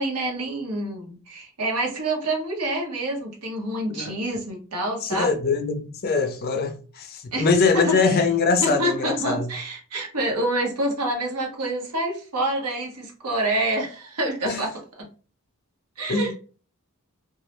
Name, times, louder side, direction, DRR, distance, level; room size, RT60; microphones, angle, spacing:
voice 1, 0.0-5.3 7.3-7.5 7.7-8.2 8.6-14.7 15.0-15.1 16.0-16.4, right 1 dB, 85° right, 0.9 m, -27 dB
voice 2, 5.0-9.5 14.4-14.7 16.1-16.3, left 4 dB, 45° left, 0.4 m, -23 dB
2.3 x 2.0 x 2.9 m
head